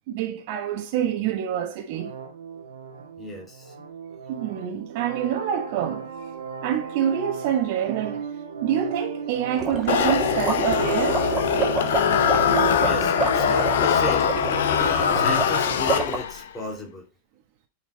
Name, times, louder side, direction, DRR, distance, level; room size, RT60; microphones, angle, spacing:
voice 1, 0.1-2.1 4.3-6.1 6.6-8.3 8.6-11.3, right 10 dB, 45° right, 1.2 m, -26 dB
sound 1, 1.9-15.9, right 7 dB, 65° right, 1.4 m, -35 dB
voice 2, 3.2-3.7 12.8-14.4 14.8-17.0, left 2 dB, 15° left, 3.0 m, -34 dB
sound 2, 9.6-16.2, right 4 dB, 20° right, 1.9 m, -28 dB
sound 3, 9.9-16.5, left 8 dB, 60° left, 0.7 m, -22 dB
9.1 x 4.6 x 4.4 m
figure-of-eight pair, 90°, 0 cm